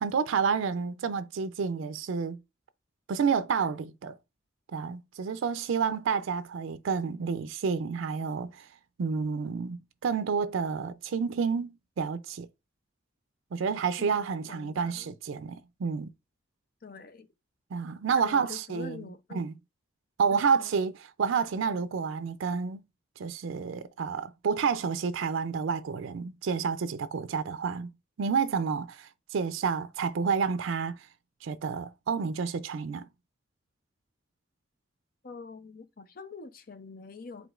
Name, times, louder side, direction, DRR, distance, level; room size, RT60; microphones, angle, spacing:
voice 1, 0.0-2.4 3.1-4.1 4.7-8.7 9.0-12.5 13.5-16.1 17.7-19.0 19.3-19.5 20.2-20.9 21.2-22.8 23.2-27.9 28.2-31.1 31.4-33.1, right 5 dB, 85° right, 0.4 m, -29 dB
voice 2, 14.5-15.1 16.8-17.3 18.2-19.5 20.3-20.7 35.2-37.5, left 4 dB, 50° left, 0.5 m, -45 dB
4.9 x 3.7 x 2.4 m
head